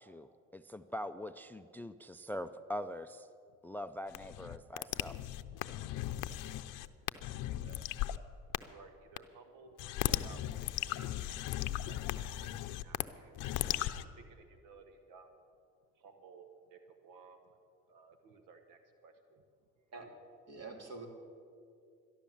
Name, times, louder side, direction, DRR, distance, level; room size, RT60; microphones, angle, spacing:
voice 1, 0.0-3.3 3.6-5.3, left 1 dB, 5° left, 13 dB, 0.4 m, -43 dB
sound 1, 4.1-8.2 8.5-8.6 9.2-9.3 9.8-13.0 13.3-14.0, left 14 dB, 70° left, 0.6 m, -37 dB
voice 2, 8.7-12.0 12.4-13.6 14.5-15.3 16.0-17.4 17.9-19.1 19.9-20.0, right 4 dB, 75° right, 7 dB, 1.1 m, -57 dB
voice 3, 20.5-21.1, right 3 dB, 50° right, 3 dB, 2.7 m, -46 dB
13.5 x 11.0 x 7.2 m, 2.4 s
supercardioid pair, 70°, 33 cm